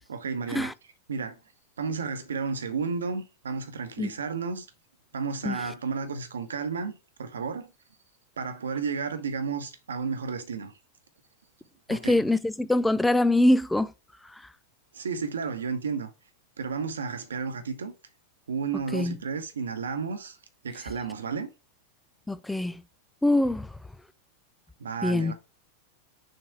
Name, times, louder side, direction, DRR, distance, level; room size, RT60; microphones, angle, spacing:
voice 1, 0.1-0.7 1.1-1.4 1.8-4.7 5.1-7.7 8.4-10.7 11.9-12.2 14.9-16.1 16.6-17.9 18.5-20.4 20.6-21.5 24.8-25.3, right 5 dB, 70° right, 1.0 m, -32 dB
voice 2, 11.9-13.9 18.9-19.2 22.3-22.8 23.2-23.7 25.0-25.3, left 1 dB, 5° left, 0.4 m, -23 dB
6.6 x 3.4 x 4.5 m
figure-of-eight pair, 90°, 0 cm